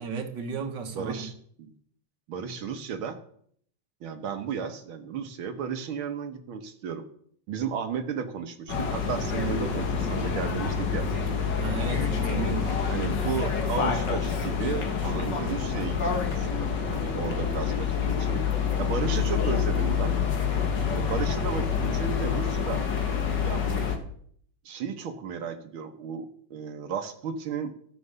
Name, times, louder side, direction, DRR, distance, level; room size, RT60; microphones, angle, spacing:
voice 1, 0.0-1.2 11.6-12.9, right 5 dB, 60° right, 5 dB, 2.2 m, -34 dB
voice 2, 0.9-1.3 1.6-1.7 2.3-3.2 4.0-7.0 7.5-11.0 12.9-18.4 18.8-20.2 20.9-22.8 23.4-23.9 24.7-27.7, right 6 dB, 85° right, 7 dB, 2.0 m, -34 dB
sound 1, 8.7-24.0, left 6 dB, 60° left, 2.2 m, -27 dB
13.5 x 7.8 x 6.8 m, 0.62 s
omnidirectional pair, 2.2 m